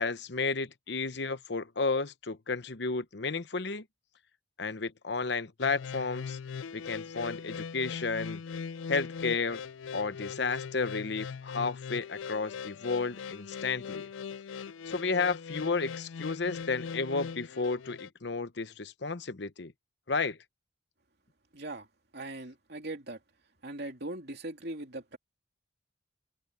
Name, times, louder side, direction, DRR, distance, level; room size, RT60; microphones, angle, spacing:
voice 1, 0.0-3.8 4.6-6.4 6.7-8.4 8.9-9.6 9.9-14.1 14.9-19.7 20.1-20.4, left 4 dB, 60° left, 0.9 m, -32 dB
sound 1, 5.6-18.1, left 6 dB, 80° left, 0.4 m, -40 dB
voice 2, 21.5-21.9 22.1-23.2 23.6-25.2, right 2 dB, 55° right, 3.0 m, -40 dB
head